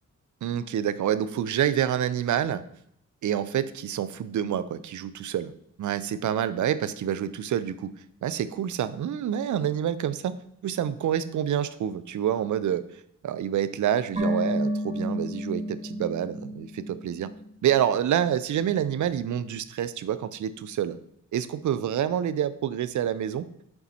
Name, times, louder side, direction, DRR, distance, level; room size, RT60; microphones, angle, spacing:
voice 1, 0.4-2.6 3.2-5.5 5.8-7.9 8.2-10.4 10.6-12.9 13.2-17.3 17.6-21.0 21.3-23.5, right 10 dB, 70° right, 14 dB, 0.5 m, -27 dB
sound 1, 14.2-17.5 17.7-17.8, equal, 20° right, 2.8 m, -31 dB
6.7 x 4.2 x 4.2 m, 0.73 s
cardioid pair, 70°, 31 cm